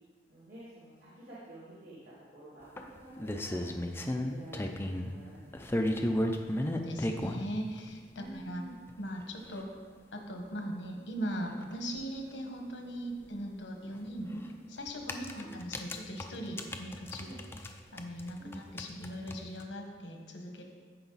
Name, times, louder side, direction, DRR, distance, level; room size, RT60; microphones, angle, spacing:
voice 1, 0.3-3.7 4.0-6.0 8.1-8.8 15.2-15.6 17.2-17.4 18.4-18.6, right 1 dB, 60° right, -10 dB, 2.4 m, -50 dB
sound 1, 2.8-5.1 5.5-7.4 8.4-8.5 8.9-9.0 9.2-9.3 9.6-9.7 11.6-11.7 12.0-12.1 14.0-14.2 14.9-17.7 18.0-19.6, left 1 dB, 15° left, 0.5 m, -34 dB
voice 2, 6.6-8.6 9.0-9.7 10.1-17.3 17.9-20.6, equal, 90° left, 3 dB, 1.4 m, -39 dB
14.5 x 4.9 x 4.0 m, 1.5 s
head